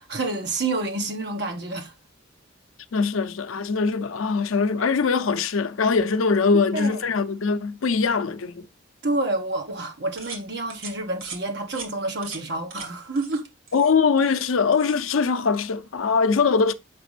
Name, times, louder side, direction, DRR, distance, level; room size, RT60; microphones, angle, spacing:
voice 1, 0.0-1.9 6.5-7.0 9.0-13.5, right 2 dB, 55° right, 1.2 m, -28 dB
voice 2, 2.9-8.6 13.7-16.7, left 5 dB, 80° left, 0.6 m, -22 dB
sound 1, 10.2-10.4 10.7-10.9 11.2-11.4 11.7-11.9 12.2-12.4 12.7-12.9 13.2-13.4 13.7-14.5 14.7-15.0, right 5 dB, 85° right, 2.2 m, -39 dB
6.8 x 5.0 x 3.2 m
head